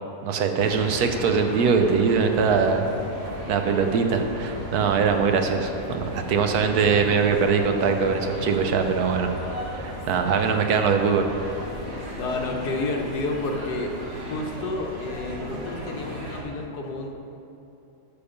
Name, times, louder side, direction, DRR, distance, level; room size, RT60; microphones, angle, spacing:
voice 1, 0.2-2.9 3.5-9.3 9.8-11.3, right 5 dB, 75° right, 5 dB, 1.2 m, -22 dB
sound 1, 0.6-16.4, equal, 40° right, 1.8 m, -35 dB
voice 2, 12.1-17.1, left 2 dB, 75° left, 2 dB, 1.5 m, -30 dB
10.5 x 6.8 x 5.1 m, 2.8 s
omnidirectional pair, 1.7 m